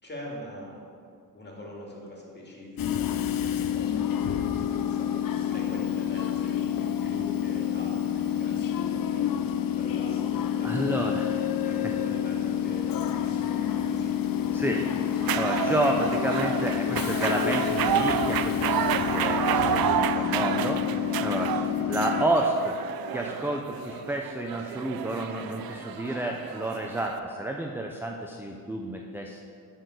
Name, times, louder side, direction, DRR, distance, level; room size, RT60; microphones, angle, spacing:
voice 1, 0.0-0.8 1.3-6.6 7.0-11.3 11.6-14.7 20.1-20.5 21.3-21.8, left 1 dB, 25° left, -3 dB, 2.4 m, -43 dB
Train / Subway metro underground, 2.8-22.3, left 9 dB, 60° left, 0.6 m, -28 dB
voice 2, 10.6-11.9 14.5-14.9 15.3-21.6 21.9-22.8 23.1-29.4, right 1 dB, 5° right, 1 dB, 0.6 m, -30 dB
sound 1, 15.2-27.2, right 9 dB, 65° right, 0.5 m, -30 dB
11.0 x 4.2 x 6.4 m, 2.5 s
cardioid pair, 80°, 38 cm